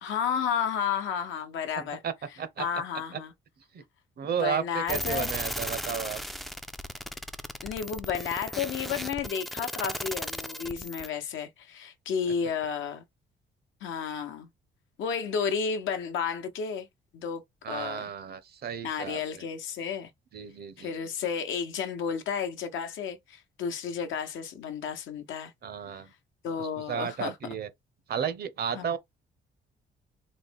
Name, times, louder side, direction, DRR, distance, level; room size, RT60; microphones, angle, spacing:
voice 1, 0.0-2.0 2.6-3.3 4.2-5.3 7.6-13.0 13.8-14.5 15.0-16.9 17.1-17.4 17.7-18.1 18.8-20.1 20.8-25.5 26.4-27.3 28.7-29.0, left 7 dB, 80° left, 0.8 m, -32 dB
voice 2, 1.8-2.7 3.1-3.2 3.7-3.8 4.2-6.2 17.6-19.4 20.3-20.9 25.6-26.1 26.6-27.7 28.1-29.0, right 8 dB, 55° right, 0.7 m, -33 dB
sound 1, 4.9-11.1, equal, ahead, 0.3 m, -36 dB
4.0 x 2.0 x 3.4 m
cardioid pair, 90°, 20 cm